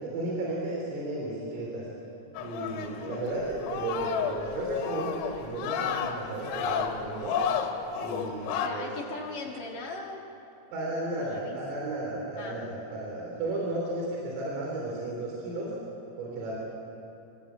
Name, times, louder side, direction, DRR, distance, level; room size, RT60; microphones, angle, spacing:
voice 1, 0.0-1.9 2.4-7.4 8.0-8.9 10.7-15.7 16.2-16.6, right 2 dB, 80° right, -2 dB, 5.8 m, -34 dB
sound 1, 2.4-8.7, left 7 dB, 85° left, 4.1 m, -32 dB
voice 2, 8.6-10.2 11.2-11.6 12.4-12.6, left 3 dB, 55° left, -1 dB, 2.5 m, -39 dB
26.0 x 17.5 x 8.1 m, 2.9 s
omnidirectional pair, 5.9 m